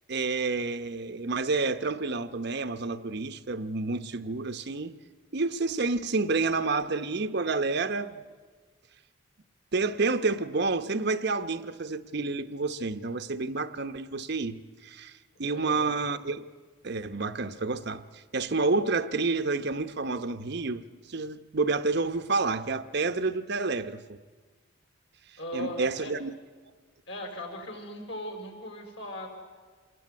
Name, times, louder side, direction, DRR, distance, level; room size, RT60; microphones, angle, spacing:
voice 1, 0.1-4.9 5.3-8.2 9.7-16.5 16.8-20.8 21.1-24.2 25.5-26.3, right 3 dB, 55° right, 0.9 m, -29 dB
voice 2, 15.4-15.9 25.4-26.1 27.1-29.3, left 1 dB, 65° left, 5.6 m, -38 dB
27.0 x 20.5 x 9.5 m
head